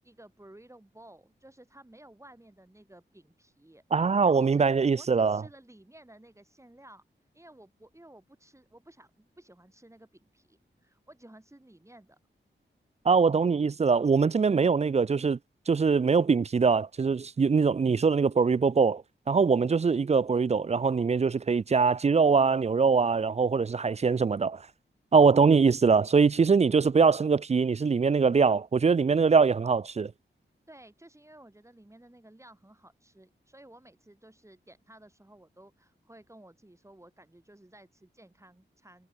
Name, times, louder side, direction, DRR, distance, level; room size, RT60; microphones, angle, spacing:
voice 1, 0.0-3.8 4.2-7.0 7.3-12.2 30.7-39.1, right 1 dB, 15° right, 5.4 m, -54 dB
voice 2, 3.9-5.4 13.1-15.4 15.7-19.0 19.3-24.6 25.1-30.1, right 5 dB, 35° right, 0.4 m, -23 dB
wide cardioid pair, 90°, 19 cm